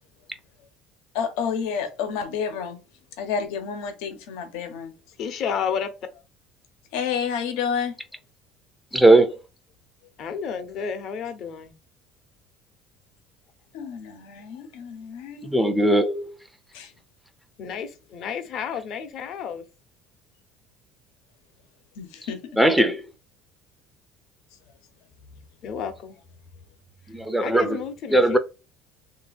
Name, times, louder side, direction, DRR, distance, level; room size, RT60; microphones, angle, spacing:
voice 1, 1.1-2.8 3.2-4.9 6.9-8.0 13.7-15.5 16.7-16.9 22.0-22.4, left 6 dB, 85° left, 0.9 m, -30 dB
voice 2, 5.2-6.2 10.2-11.7 17.6-19.6 25.6-26.1 27.1-28.4, left 7 dB, 45° left, 0.7 m, -31 dB
voice 3, 8.9-9.4 15.4-16.3 22.6-23.1 27.1-27.8 28.1-28.4, right 1 dB, ahead, 0.4 m, -19 dB
3.4 x 2.7 x 4.0 m
cardioid pair, 155°, 0 cm